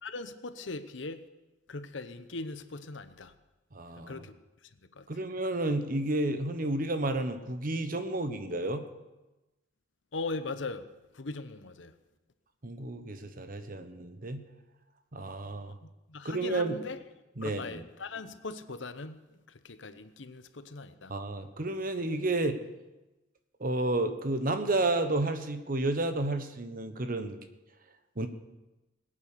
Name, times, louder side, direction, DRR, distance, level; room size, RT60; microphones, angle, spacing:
voice 1, 0.0-1.2 1.7-3.3 4.0-4.4 5.0-5.1 10.1-10.8 11.1-11.9 16.1-17.0 17.4-19.2 19.6-21.1, left 3 dB, 75° left, 11 dB, 0.9 m, -39 dB
voice 2, 3.7-4.2 5.1-8.8 12.6-14.4 15.1-15.7 16.2-16.8 17.4-17.8 21.1-22.6 23.6-27.4 28.2-28.3, right 2 dB, 45° right, 9 dB, 1.1 m, -31 dB
20.5 x 8.9 x 6.8 m, 1.0 s
head